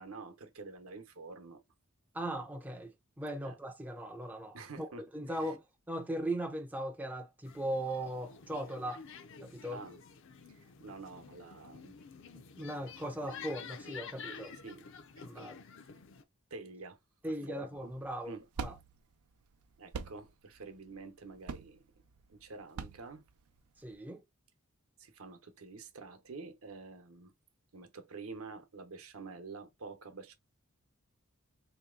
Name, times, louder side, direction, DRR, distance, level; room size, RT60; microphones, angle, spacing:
voice 1, 0.0-1.6 3.4-3.5 4.5-5.5 9.7-10.0 10.5-12.0 14.6-14.9 15.3-15.5 16.5-17.0 17.3-17.9 18.3-18.5 19.8-21.8 22.3-23.2 25.0-27.3 27.7-30.3, right 4 dB, 70° right, 0.8 m, -48 dB
voice 2, 2.1-4.9 5.1-5.6 5.9-9.0 9.4-9.8 12.6-14.5 15.2-15.6 17.2-18.3 18.6-18.7 23.8-24.2, right 1 dB, 10° right, 0.4 m, -38 dB
sound 1, 7.4-16.2, left 6 dB, 60° left, 0.5 m, -50 dB
sound 2, 17.8-23.9, right 5 dB, 90° right, 0.5 m, -45 dB
3.1 x 2.8 x 3.7 m
head